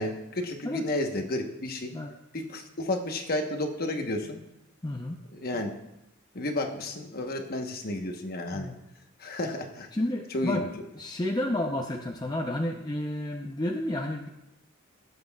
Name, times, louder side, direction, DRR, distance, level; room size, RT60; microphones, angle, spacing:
voice 1, 0.0-1.9 2.3-4.4 5.3-5.7 6.3-8.7 9.2-9.9 10.3-10.7, left 1 dB, 50° left, 4 dB, 1.1 m, -32 dB
voice 2, 4.8-5.2 8.5-8.8 9.9-10.7 11.0-14.3, left 1 dB, 20° left, 1 dB, 0.6 m, -31 dB
17.5 x 7.8 x 2.4 m, 0.88 s
head